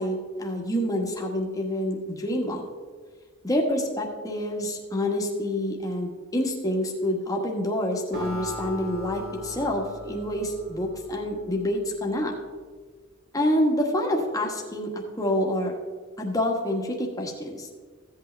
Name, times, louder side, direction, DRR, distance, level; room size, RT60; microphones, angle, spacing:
voice 1, 0.0-2.6 3.4-12.3 13.3-15.7 16.2-17.7, left 1 dB, 15° left, 0 dB, 1.5 m, -27 dB
Acoustic guitar, 8.1-11.7, equal, 45° right, 2.6 m, -39 dB
15.0 x 8.3 x 3.4 m, 1.5 s
head